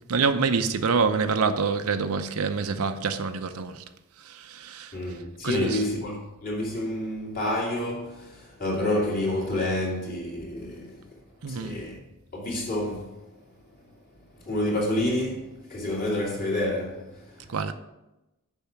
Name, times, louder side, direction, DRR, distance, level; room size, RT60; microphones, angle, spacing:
voice 1, 0.1-3.8 4.2-4.9 5.4-5.8 11.4-11.8 17.5-17.7, right 5 dB, 80° right, 0.6 m, -26 dB
voice 2, 4.9-11.2 11.5-12.0 12.3-13.3 14.4-17.6, left 1 dB, 40° left, 2.5 m, -29 dB
7.0 x 5.5 x 5.8 m
head